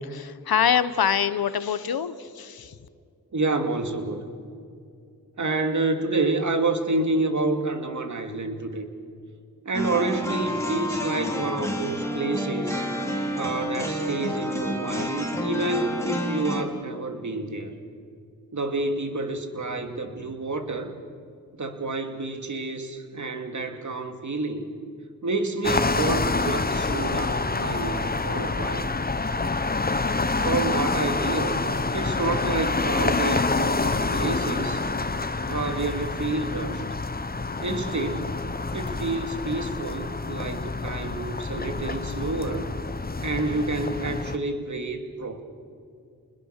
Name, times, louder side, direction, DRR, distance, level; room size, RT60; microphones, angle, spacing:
voice 1, 0.1-2.7, left 8 dB, 80° left, 14 dB, 1.1 m, -24 dB
voice 2, 3.3-4.3 5.4-8.8 9.7-12.8 13.3-17.7 18.5-20.9 21.6-24.7 25.2-28.9 30.4-31.6 31.9-34.8 35.5-36.8 37.6-38.4 38.7-42.7 43.2-45.4, right 2 dB, 55° right, 6 dB, 2.6 m, -29 dB
sound 1, 9.7-16.6, equal, 10° left, 3.8 m, -29 dB
sound 2, 25.6-44.4, left 3 dB, 25° left, 1.1 m, -27 dB
30.0 x 21.0 x 6.7 m, 2.4 s
cardioid pair, 55°, 36 cm